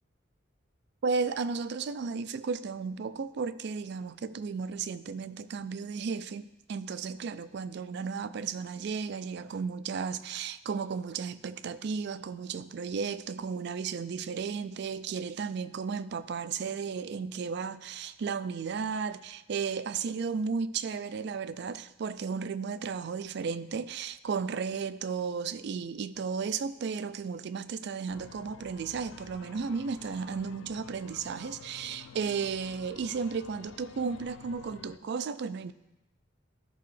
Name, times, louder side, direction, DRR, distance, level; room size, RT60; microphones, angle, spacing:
voice 1, 1.0-35.7, right 5 dB, 60° right, 0.3 m, -34 dB
sound 1, 28.1-35.0, left 6 dB, 75° left, 0.4 m, -50 dB
13.5 x 5.7 x 3.2 m
head